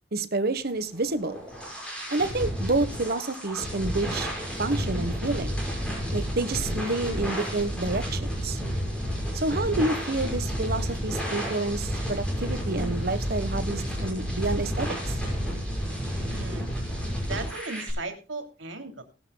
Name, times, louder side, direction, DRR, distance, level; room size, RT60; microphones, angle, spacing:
voice 1, 0.1-1.4 2.1-4.3 4.6-5.6 6.1-8.6 9.3-15.0, right 2 dB, 50° right, 11 dB, 1.4 m, -29 dB
sound 1, 0.9-17.9, equal, 5° left, 5.9 m, -31 dB
voice 2, 16.2-16.7 17.2-19.0, right 3 dB, 80° right, 5 dB, 3.0 m, -37 dB
19.5 x 12.0 x 2.3 m, 0.31 s
head